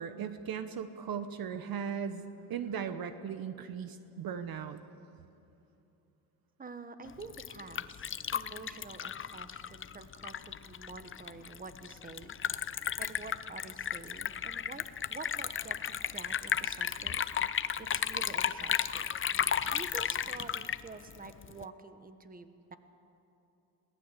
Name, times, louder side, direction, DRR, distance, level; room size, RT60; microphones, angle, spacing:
voice 1, 0.0-4.8, right 7 dB, 50° right, 10 dB, 1.1 m, -38 dB
voice 2, 6.6-12.7 13.0-17.3 17.8-19.1 19.7-22.8, right 4 dB, 20° right, 10 dB, 1.4 m, -48 dB
Liquid, 7.1-21.6, left 8 dB, 30° left, 0.6 m, -34 dB
22.0 x 18.0 x 8.4 m, 2.9 s
cardioid pair, 100°, 45 cm